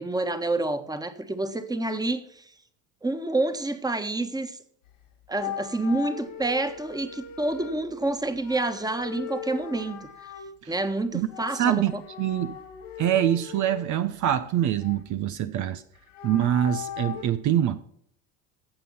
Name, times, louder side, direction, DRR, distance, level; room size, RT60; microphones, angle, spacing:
voice 1, 0.0-2.4 3.0-4.6 5.3-10.1 10.7-12.0, right 2 dB, 10° right, 1.6 m, -28 dB
sound 1, 4.9-5.0 5.4-7.9 8.4-10.5 11.2-13.8 14.3-15.2 15.9-17.2, left 9 dB, 90° left, 3.7 m, -39 dB
voice 2, 11.5-11.9 12.2-12.6 13.0-15.8 16.2-17.8, right 11 dB, 55° right, 0.9 m, -24 dB
16.0 x 7.0 x 5.6 m
hypercardioid pair, 75°, 37 cm